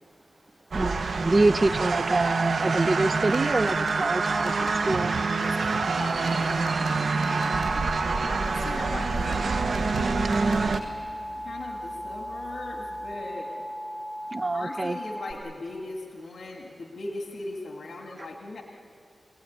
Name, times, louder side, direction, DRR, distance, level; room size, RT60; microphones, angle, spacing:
voice 1, 0.7-5.1 14.3-15.0, right 2 dB, 30° right, 13 dB, 0.5 m, -26 dB
sound 1, 0.7-10.8, right 4 dB, 65° right, 0.9 m, -26 dB
sound 2, 1.6-13.2, left 2 dB, 55° left, 7.7 m, -47 dB
voice 2, 5.4-6.7 8.2-9.4 9.9-10.8 11.4-13.5 14.5-18.6, left 2 dB, 80° left, 1 dB, 1.9 m, -39 dB
Alarm, 7.1-15.3, equal, 10° left, 1.6 m, -37 dB
25.5 x 18.0 x 9.3 m, 2.4 s
wide cardioid pair, 150°, 0 cm